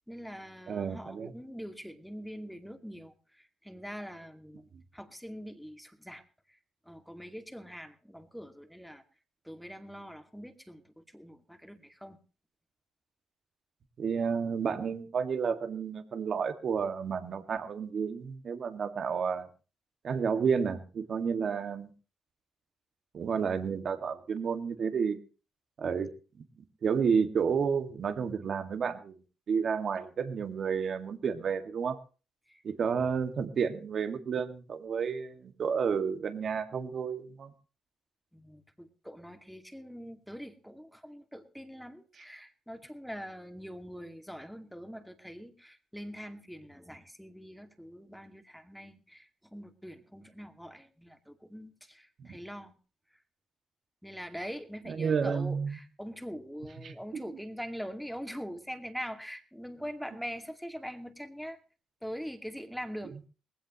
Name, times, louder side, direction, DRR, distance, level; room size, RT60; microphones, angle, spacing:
voice 1, 0.1-4.6 4.9-6.2 6.9-9.0 9.4-12.2 32.5-32.6 38.3-52.7 54.0-61.6 62.0-63.3, equal, ahead, 6 dB, 2.3 m, -43 dB
voice 2, 0.7-1.3 14.0-19.5 20.0-21.9 23.1-25.2 25.8-26.1 26.8-29.2 29.5-32.0 32.6-37.5 52.2-52.3 54.9-55.7 56.8-57.2, right 6 dB, 55° right, 8 dB, 2.1 m, -31 dB
19.5 x 16.5 x 3.1 m, 0.36 s
cardioid pair, 90°, 0 cm